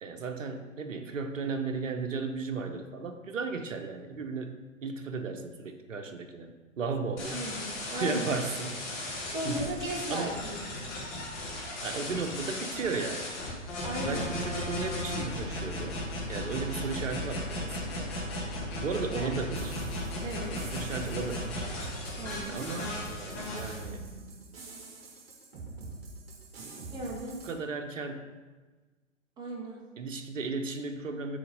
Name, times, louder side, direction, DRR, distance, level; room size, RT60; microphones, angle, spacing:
voice 1, 0.0-7.5 7.9-8.8 9.4-9.7 10.1-10.4 11.8-13.3 14.0-18.1 18.8-19.8 20.5-21.7 22.5-24.0 26.6-28.3 30.0-31.4, right 4 dB, 75° right, 6 dB, 0.8 m, -35 dB
sound 1, 7.2-23.8, left 1 dB, 25° left, 1.6 m, -36 dB
voice 2, 7.3-8.3 9.3-10.6 13.8-14.3 19.2-19.3 20.2-20.5 22.2-22.6 26.9-27.3 29.4-29.8, right 1 dB, 10° right, -1 dB, 0.8 m, -36 dB
sound 2, 19.5-27.5, right 3 dB, 50° right, 1.5 m, -44 dB
6.9 x 3.5 x 5.1 m, 1.3 s
figure-of-eight pair, 120°, 39 cm